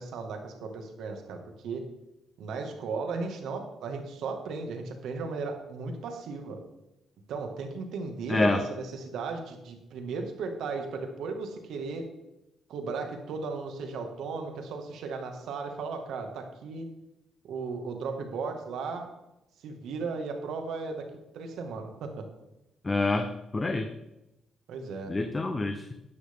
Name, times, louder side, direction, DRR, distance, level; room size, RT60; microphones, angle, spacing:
voice 1, 0.0-1.9 2.4-6.6 7.3-12.1 12.7-16.9 17.5-19.1 19.6-22.3 24.7-25.1, right 4 dB, 75° right, 4 dB, 2.0 m, -36 dB
voice 2, 8.3-8.6 22.8-23.9 25.1-25.8, left 2 dB, 25° left, 7 dB, 0.9 m, -27 dB
11.0 x 11.0 x 3.7 m, 0.91 s
cardioid pair, 90°, 0 cm